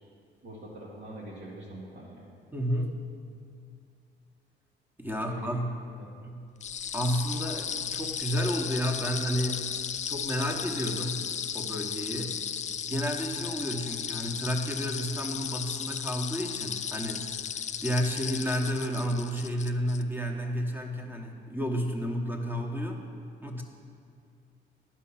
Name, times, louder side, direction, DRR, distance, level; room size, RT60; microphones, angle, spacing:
voice 1, 0.4-2.3 5.2-5.6 6.0-6.1, right 1 dB, 75° right, -8 dB, 1.8 m, -43 dB
voice 2, 2.5-3.0 5.0-5.8 6.2-6.4 6.9-9.7 10.1-11.3 11.5-12.3 12.9-17.3 17.8-23.0 23.4-23.6, equal, 10° right, 2 dB, 1.1 m, -31 dB
sound 1, 6.6-20.0, left 8 dB, 35° left, 0.4 m, -35 dB
10.5 x 5.9 x 5.7 m, 2.4 s
cardioid pair, 90°, 20 cm